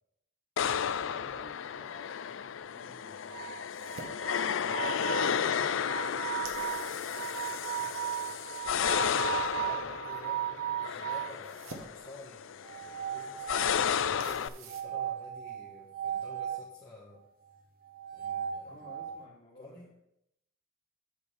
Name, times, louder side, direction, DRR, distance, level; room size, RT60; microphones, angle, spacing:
sound 1, 0.6-14.5, left 8 dB, 65° left, 0.4 m, -33 dB
voice 1, 0.6-3.3 5.1-7.5 18.6-19.8, left 1 dB, 35° left, -3 dB, 2.6 m, -55 dB
sound 2, 0.6-14.8, right 4 dB, 85° right, 1.1 m, -54 dB
sound 3, 3.3-11.4 12.6-13.9 14.7-16.6 17.8-19.2, right 11 dB, 45° right, 0.8 m, -37 dB
voice 2, 4.6-5.8 7.8-7.9 8.1-17.2 18.1-18.9 19.6-19.9, left 2 dB, 20° left, -7 dB, 1.4 m, -51 dB
8.7 x 4.4 x 6.8 m, 0.80 s
head